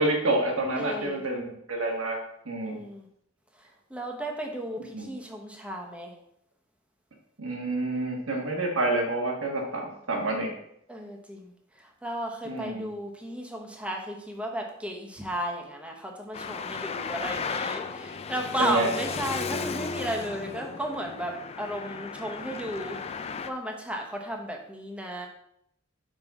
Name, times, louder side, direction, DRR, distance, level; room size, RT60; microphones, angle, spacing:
voice 1, 0.0-2.2 2.4-2.8 4.9-5.1 7.4-10.5 12.4-12.9 18.6-18.9, right 2 dB, 85° right, 1 dB, 1.5 m, -28 dB
voice 2, 0.8-1.2 2.6-3.1 3.5-6.2 10.9-23.0 23.5-25.3, right 1 dB, 5° right, 1 dB, 0.9 m, -34 dB
Traffic noise roadway noise, 16.3-23.5, left 5 dB, 30° left, 0.4 m, -35 dB
5.6 x 5.4 x 3.6 m, 0.73 s
head